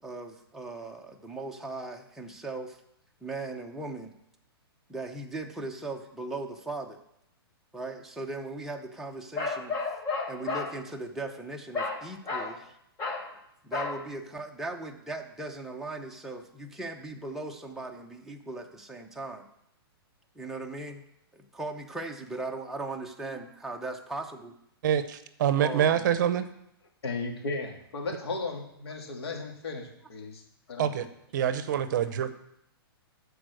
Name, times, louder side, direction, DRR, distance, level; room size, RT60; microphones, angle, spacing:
voice 1, 0.0-2.8 3.2-4.1 4.9-7.0 7.7-9.8 10.3-12.8 13.6-19.4 20.3-21.0 21.3-24.5 25.6-26.1, right 2 dB, 5° right, 1 dB, 0.8 m, -38 dB
Bark, 9.4-10.7 11.7-12.0 12.3-12.5 13.0-13.3 13.7-14.0, left 4 dB, 25° left, 1.9 m, -32 dB
voice 2, 24.8-26.5 30.8-31.1 31.3-32.3, right 9 dB, 50° right, 12 dB, 0.8 m, -26 dB
voice 3, 27.0-30.4 30.7-30.9, left 3 dB, 80° left, 1 dB, 2.8 m, -35 dB
13.0 x 4.9 x 6.4 m, 0.76 s
hypercardioid pair, 150°, 13 cm